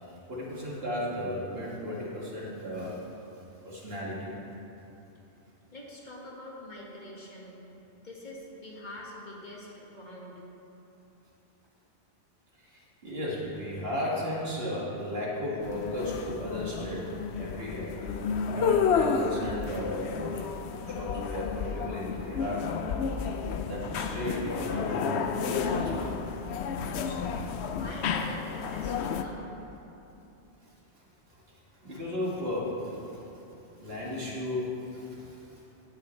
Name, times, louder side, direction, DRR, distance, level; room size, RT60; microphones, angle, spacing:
voice 1, 0.0-3.1 3.6-4.4 12.6-18.0 18.4-22.6 23.6-25.3 25.6-26.1 30.6-31.0 31.5-35.6, left 1 dB, 55° right, -5 dB, 2.4 m, -35 dB
voice 2, 5.7-7.6 7.9-10.4 27.7-29.5, left 1 dB, 40° left, -4 dB, 1.9 m, -44 dB
sound 1, 15.6-29.2, left 6 dB, 70° left, 0.8 m, -31 dB
16.0 x 9.1 x 3.2 m, 2.9 s
omnidirectional pair, 1.2 m